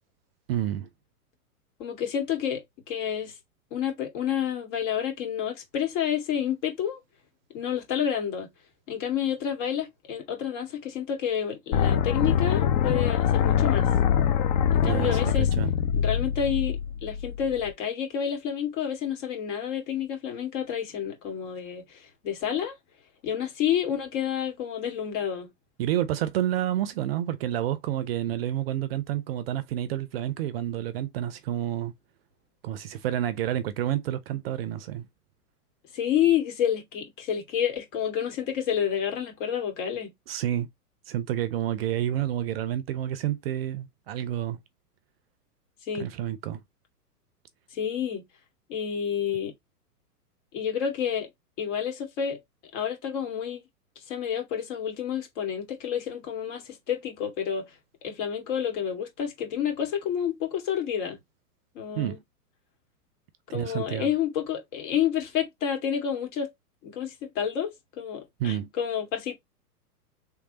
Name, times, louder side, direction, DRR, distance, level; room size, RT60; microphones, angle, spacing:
voice 1, 0.5-0.9 14.8-15.7 25.8-31.9 32.6-35.1 40.3-40.7 41.1-44.6 45.9-46.6 61.9-62.2 63.5-64.1 68.4-68.7, right 11 dB, 40° right, 0.5 m, -29 dB
voice 2, 1.8-3.3 3.7-7.0 7.5-8.5 8.9-13.9 14.7-15.5 15.9-22.8 23.2-25.5 35.9-40.1 45.8-46.1 47.7-48.2 48.7-49.5 50.5-51.3 51.6-52.4 52.7-53.6 54.1-57.7 58.0-61.2 61.7-62.2 63.5-66.5 66.8-67.7 68.0-69.3, left 9 dB, 50° left, 2.1 m, -29 dB
sound 1, 11.7-17.7, left 8 dB, 30° left, 0.4 m, -24 dB
3.4 x 3.2 x 2.9 m
hypercardioid pair, 115°, 46 cm